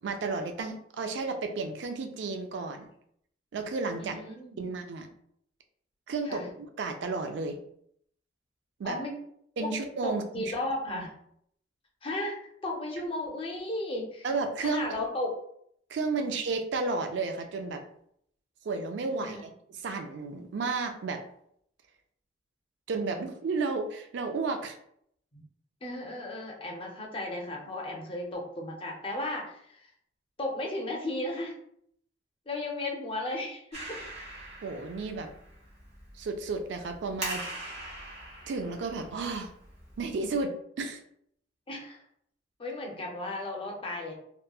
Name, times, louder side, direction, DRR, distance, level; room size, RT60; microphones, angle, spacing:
voice 1, 0.0-2.9 3.5-4.2 4.6-5.1 6.1-6.4 6.8-7.6 8.8-9.0 9.6-10.6 10.9-11.1 14.2-14.9 15.9-17.8 18.6-19.5 19.8-21.2 22.9-24.8 34.6-35.3 36.2-37.8 38.5-39.5 40.0-41.0, right 3 dB, 70° right, 6 dB, 0.4 m, -32 dB
voice 2, 4.0-4.7 6.3-6.4 8.8-9.1 9.6-9.7 10.0-11.1 12.0-12.3 12.6-14.3 14.6-15.4 16.1-16.3 19.1-19.4 25.3-25.4 25.8-29.9 30.4-31.5 32.5-34.0 41.7-42.0 42.6-44.1, left 2 dB, 30° left, 0 dB, 0.5 m, -35 dB
Clapping, 33.7-40.4, right 1 dB, 35° right, 1.0 m, -42 dB
2.9 x 2.2 x 2.2 m, 0.69 s
head